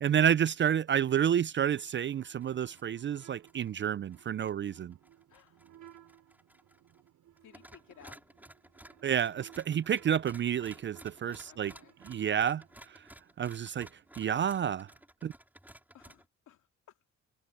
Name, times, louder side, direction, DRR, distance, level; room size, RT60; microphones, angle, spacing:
voice 1, 0.0-5.0 9.0-11.7 12.0-13.0 13.4-13.9 14.2-14.9 15.2-15.3, right 9 dB, 40° right, 0.4 m, -29 dB
sound 1, 0.8-13.0, right 11 dB, 70° right, 5.1 m, -60 dB
sound 2, 1.7-1.8 2.1-2.9 3.1-7.1 7.4-16.2, right 1 dB, 5° right, 5.0 m, -56 dB
voice 2, 5.3-5.7 7.4-8.2 11.4-12.0 15.9-17.1, left 11 dB, 75° left, 2.5 m, -58 dB
cardioid pair, 90°, 30 cm